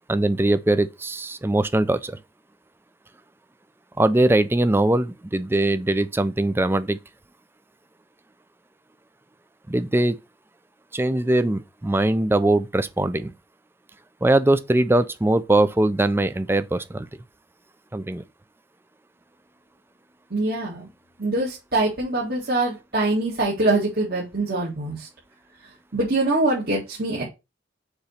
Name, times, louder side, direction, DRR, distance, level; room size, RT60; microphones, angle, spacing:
voice 1, 0.1-2.2 4.0-7.0 9.7-10.2 10.9-13.3 14.2-17.1 17.9-18.2, right 1 dB, 10° right, 0.4 m, -21 dB
voice 2, 20.3-20.9 21.2-25.1 25.9-27.2, right 2 dB, 55° right, 2.0 m, -24 dB
6.7 x 3.0 x 5.7 m
head